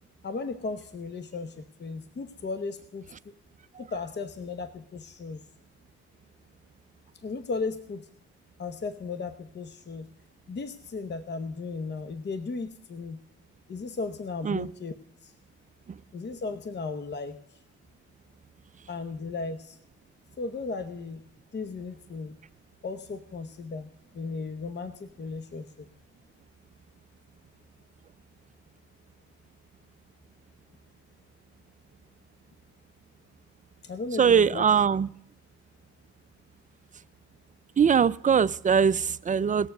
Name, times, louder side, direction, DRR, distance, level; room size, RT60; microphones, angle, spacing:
voice 1, 0.2-3.1 3.8-5.4 7.2-8.1 8.6-10.1 10.5-13.2 13.7-14.9 15.2-15.3 16.1-17.6 18.9-19.8 20.4-21.2 21.5-22.4 22.8-25.9 33.8-34.6, left 4 dB, 35° left, 0.9 m, -36 dB
voice 2, 34.2-35.1 37.8-39.7, right 7 dB, 25° right, 0.4 m, -22 dB
18.5 x 7.1 x 6.5 m
cardioid pair, 90°, 30 cm